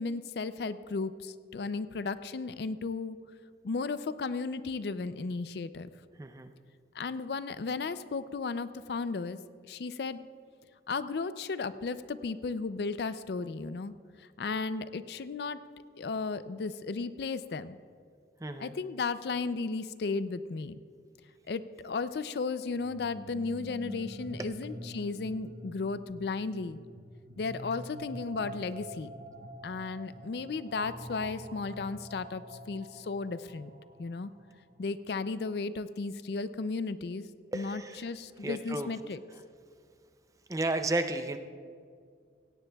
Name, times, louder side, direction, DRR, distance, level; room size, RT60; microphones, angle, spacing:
voice 1, 0.0-3.2 3.6-5.9 6.9-9.4 9.7-10.2 10.9-13.9 14.4-15.6 16.0-17.8 18.6-20.8 21.5-26.8 27.4-29.1 29.6-32.4 32.7-33.7 34.0-34.3 34.8-37.3 37.5-39.2, left 4 dB, 65° left, 13 dB, 0.4 m, -34 dB
voice 2, 6.2-6.5 18.4-18.7 24.4-24.5 37.5-38.0 38.4-38.9 40.5-41.4, right 2 dB, 20° right, 8 dB, 0.5 m, -33 dB
sound 1, 22.7-34.5, right 1 dB, 55° right, 1.0 m, -46 dB
17.0 x 17.0 x 2.3 m, 2.1 s
head